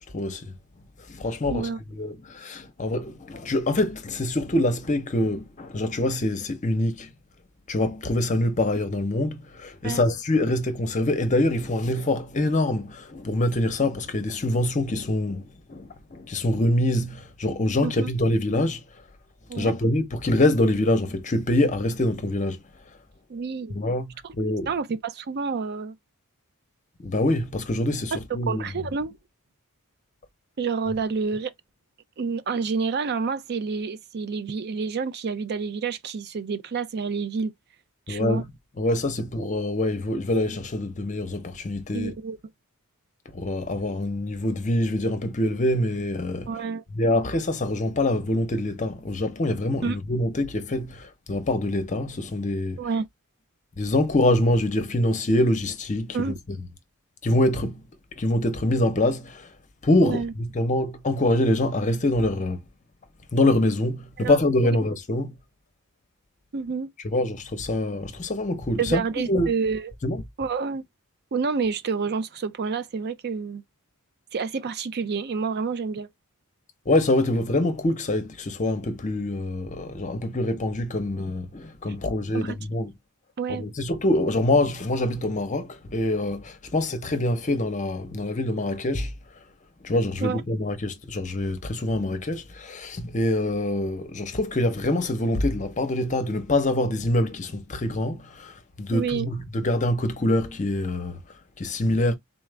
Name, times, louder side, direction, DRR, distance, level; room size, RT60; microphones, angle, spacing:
voice 1, 0.1-0.5 1.1-7.1 7.7-18.8 19.5-22.6 23.7-24.7 27.0-28.7 38.1-38.4 38.8-42.1 43.3-46.5 46.9-52.8 53.8-56.6 57.2-57.8 58.2-59.5 59.8-62.6 63.3-65.3 67.0-69.0 69.3-69.5 70.0-70.2 76.9-82.9 83.5-89.1 89.8-101.2 101.6-102.1, left 1 dB, 35° left, 0.7 m, -25 dB
voice 2, 23.3-23.8 24.2-24.3 24.7-25.9 28.5-29.1 30.6-31.5 32.2-37.5 38.1-38.4 41.9-42.4 46.5-46.8 49.8-50.0 52.8-53.1 56.1-56.4 60.0-60.3 64.2-64.4 66.5-66.9 68.8-69.9 70.4-70.8 71.3-73.6 74.3-76.1 82.3-82.6 83.4-83.6 90.2-90.4 98.9-99.3, right 5 dB, 50° right, 0.5 m, -28 dB
4.0 x 2.4 x 3.3 m
head